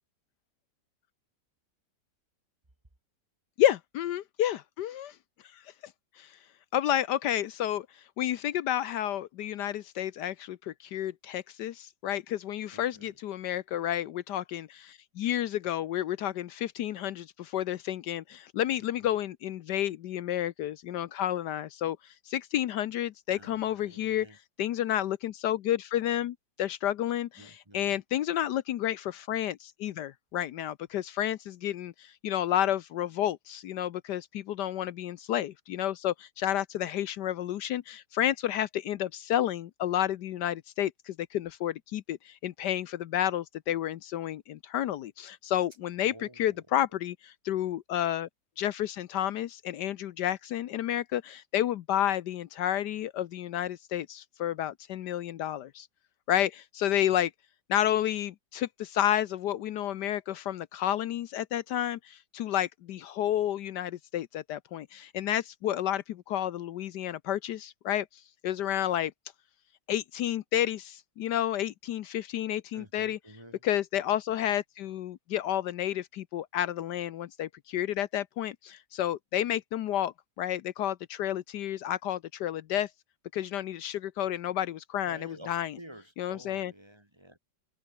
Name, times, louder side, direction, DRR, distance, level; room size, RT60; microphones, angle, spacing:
voice 1, 3.6-5.1 6.2-6.3 6.7-7.9 8.2-22.0 22.3-24.3 24.6-48.3 48.6-55.9 56.3-57.3 57.7-68.1 68.4-69.1 69.9-73.2 73.6-82.9 83.3-85.7 86.2-86.7, left 11 dB, 75° left, 1.3 m, -31 dB
voice 2, 12.7-13.2 19.0-19.1 23.3-24.4 27.4-28.0 46.0-46.6 72.7-73.6 85.1-87.4, right 1 dB, 15° right, 2.5 m, -50 dB
omnidirectional pair, 1.9 m